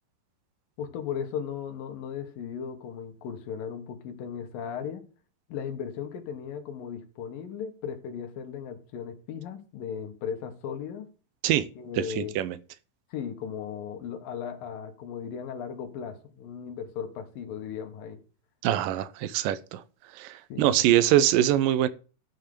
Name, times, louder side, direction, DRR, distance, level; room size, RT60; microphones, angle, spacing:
voice 1, 0.8-5.0 5.5-11.1 11.8-12.4 13.1-18.2 20.5-20.8, left 7 dB, 80° left, 3.2 m, -36 dB
voice 2, 11.9-12.6 18.6-19.8 20.1-21.9, right 12 dB, 85° right, 2.4 m, -24 dB
12.5 x 5.8 x 6.7 m
omnidirectional pair, 3.9 m